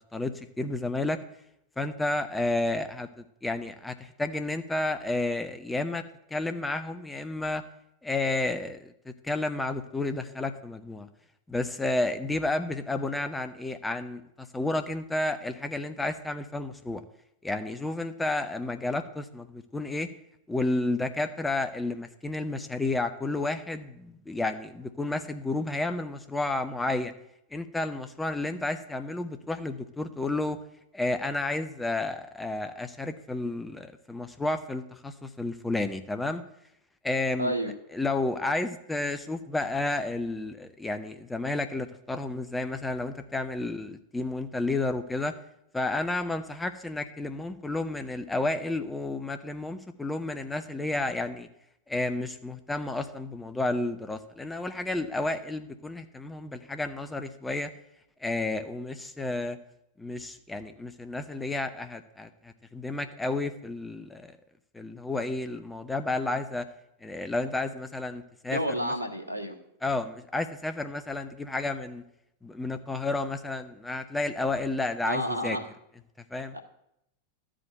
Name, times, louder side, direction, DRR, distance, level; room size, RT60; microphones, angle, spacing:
voice 1, 0.1-1.2 1.8-6.0 6.3-7.6 8.0-11.1 11.5-17.0 17.4-20.1 20.5-27.1 27.5-30.6 30.9-36.4 37.0-37.5 37.9-45.3 45.7-51.5 51.9-57.7 58.2-59.6 60.0-64.4 64.7-66.7 67.0-68.9 69.8-72.0 72.4-75.6 76.3-76.5, left 2 dB, 10° left, 8 dB, 0.7 m, -31 dB
voice 2, 37.4-37.7 68.5-69.6 75.0-75.6 76.5-76.6, equal, 90° left, 3 dB, 1.4 m, -30 dB
12.5 x 5.1 x 7.7 m, 0.79 s
figure-of-eight pair, 90°, 0 cm